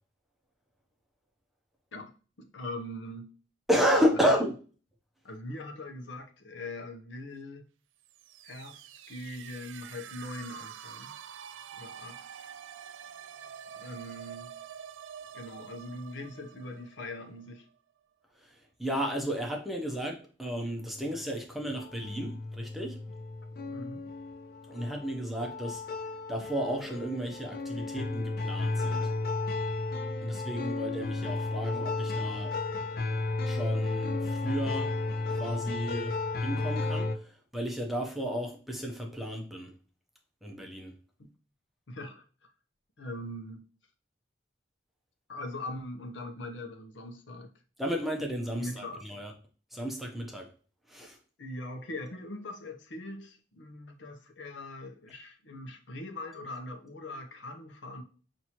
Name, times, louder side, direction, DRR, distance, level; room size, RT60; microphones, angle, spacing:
voice 1, 1.9-3.3 4.2-4.4 5.2-7.7 8.4-11.2 11.8-12.5 13.8-14.5 15.3-17.7 23.7-24.0 41.2-41.3 41.9-42.2 43.0-43.6 45.3-47.5 48.6-49.0 51.4-58.0, left 1 dB, 75° left, 0.8 m, -41 dB
voice 2, 3.7-4.5 18.8-23.0 24.7-25.8 26.3-29.1 30.2-32.5 33.4-34.9 35.3-37.2 37.5-39.7 40.4-40.9 47.8-49.3 49.7-50.5 50.9-51.2, equal, ahead, 0.6 m, -32 dB
sound 1, 8.0-17.8, right 9 dB, 85° right, 0.3 m, -47 dB
sound 2, 20.8-21.2 21.7-37.2, left 3 dB, 55° left, 0.4 m, -33 dB
5.9 x 2.6 x 2.9 m
head